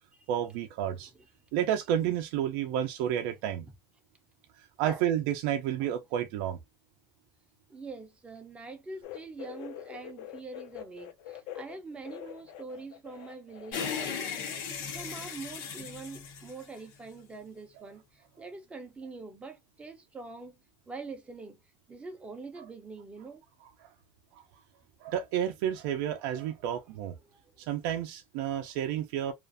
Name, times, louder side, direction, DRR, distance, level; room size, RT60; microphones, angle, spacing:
voice 1, 0.3-1.1 1.5-3.7 4.8-6.6 22.6-22.7 24.3-24.4 25.0-27.2 27.6-29.3, right 10 dB, 65° right, 0.4 m, -30 dB
voice 2, 7.7-20.6 20.9-21.6 21.9-23.4 27.2-27.4, right 3 dB, 10° right, 0.5 m, -44 dB
sound 1, 9.0-14.1 14.3-15.3 15.6-15.7 16.8-16.9, left 11 dB, 60° left, 0.5 m, -45 dB
sound 2, 13.7-17.2, left 7 dB, 85° left, 1.1 m, -37 dB
2.4 x 2.4 x 2.4 m
cardioid pair, 175°, 11 cm